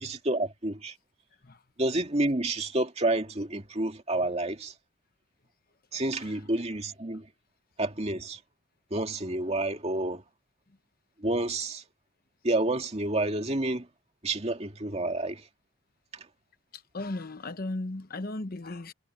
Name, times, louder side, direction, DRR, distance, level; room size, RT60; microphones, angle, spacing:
voice 1, 0.0-1.0 1.8-4.7 5.9-7.3 7.8-8.4 8.9-10.2 11.2-11.8 12.4-13.9 14.2-15.5 16.1-16.3, right 2 dB, 30° right, 2.2 m, -29 dB
voice 2, 16.7-18.9, left 2 dB, 50° left, 1.0 m, -36 dB
head